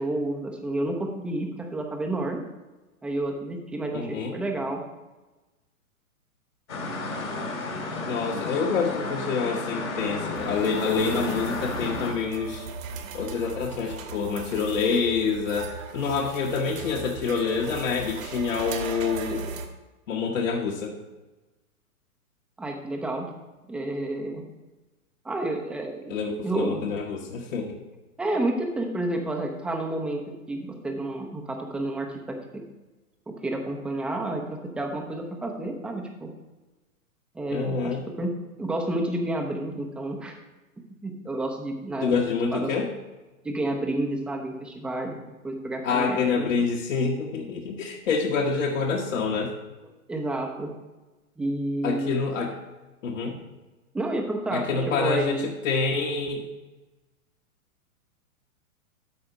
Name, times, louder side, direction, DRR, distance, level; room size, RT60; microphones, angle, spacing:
voice 1, 0.0-2.4 3.0-4.8 22.6-23.3 23.7-24.4 25.2-26.2 26.4-26.9 28.2-32.6 33.3-36.3 37.3-38.3 38.6-40.4 41.0-42.2 42.5-42.7 43.4-45.2 45.4-46.5 50.1-50.7 51.4-52.3 53.9-55.5, right 1 dB, ahead, 2 dB, 0.4 m, -30 dB
voice 2, 3.9-4.3 8.1-12.7 13.1-19.5 20.1-21.0 26.1-27.8 37.5-38.0 42.0-42.9 45.8-49.5 51.8-52.5 53.0-53.4 54.5-56.4, left 5 dB, 60° left, -1 dB, 1.2 m, -27 dB
sound 1, 6.7-12.1, left 2 dB, 75° left, 2.7 m, -32 dB
sound 2, 10.3-19.7, right 5 dB, 65° right, 1.4 m, -38 dB
13.0 x 4.3 x 4.9 m, 1.1 s
figure-of-eight pair, 115°, 43 cm